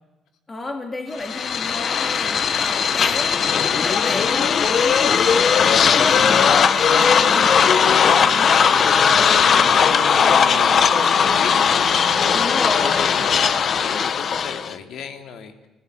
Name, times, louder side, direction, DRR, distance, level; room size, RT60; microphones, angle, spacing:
voice 1, 0.5-7.5 8.2-8.5 9.1-9.4 12.3-13.6, left 2 dB, 20° left, 4 dB, 2.6 m, -32 dB
sound 1, 1.2-14.8, left 7 dB, 40° left, 1.1 m, -18 dB
voice 2, 2.3-3.4 6.0-6.3 7.5-15.7, left 7 dB, 65° left, 6 dB, 3.2 m, -36 dB
sound 2, 6.2-13.3, right 11 dB, 80° right, 1.4 m, -36 dB
28.5 x 15.5 x 9.5 m, 1.1 s
cardioid pair, 155°, 0 cm